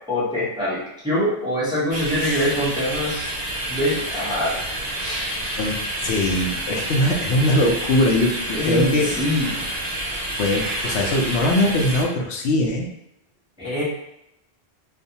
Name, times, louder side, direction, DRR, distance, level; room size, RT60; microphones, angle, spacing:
voice 1, 0.1-3.3 3.7-4.6 8.5-9.6 13.6-13.8, left 1 dB, 5° right, -9 dB, 0.8 m, -24 dB
sound 1, 1.9-12.0, right 1 dB, 50° right, 0.6 m, -28 dB
voice 2, 6.0-9.1 10.4-12.9, left 1 dB, 90° left, 1 dB, 0.8 m, -21 dB
2.5 x 2.3 x 2.7 m, 0.82 s
omnidirectional pair, 1.1 m